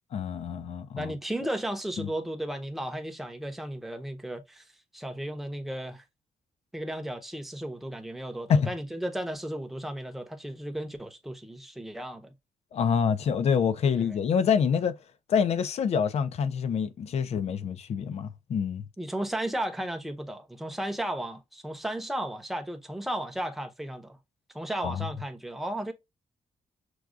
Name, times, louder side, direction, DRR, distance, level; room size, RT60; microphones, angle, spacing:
voice 1, 0.1-1.1 2.0-2.1 8.5-8.7 12.7-14.9 15.3-18.8 24.8-25.0, left 7 dB, 60° left, 0.5 m, -26 dB
voice 2, 1.0-4.7 4.9-6.0 6.7-12.3 13.8-14.2 19.0-24.2 24.5-25.9, right 1 dB, ahead, 0.7 m, -34 dB
6.2 x 2.3 x 2.4 m
cardioid pair, 130°, 12 cm